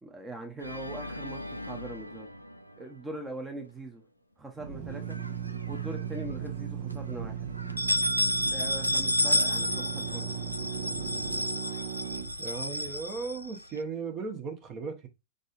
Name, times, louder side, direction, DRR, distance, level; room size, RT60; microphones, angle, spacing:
voice 1, 0.0-2.3 2.8-4.0 4.4-5.2 5.7-7.5 8.4-10.3, right 2 dB, 10° right, 0.9 m, -41 dB
Organ, 0.6-3.7, left 1 dB, 90° left, 0.4 m, -41 dB
Drill, 4.5-13.2, right 8 dB, 60° right, 0.9 m, -37 dB
sound 1, 5.1-6.0 6.4-6.5 6.9-7.0 7.6-13.8, left 1 dB, 90° right, 0.5 m, -30 dB
voice 2, 12.4-15.1, right 5 dB, 35° right, 1.2 m, -36 dB
5.1 x 4.0 x 2.5 m
figure-of-eight pair, 90°, 0 cm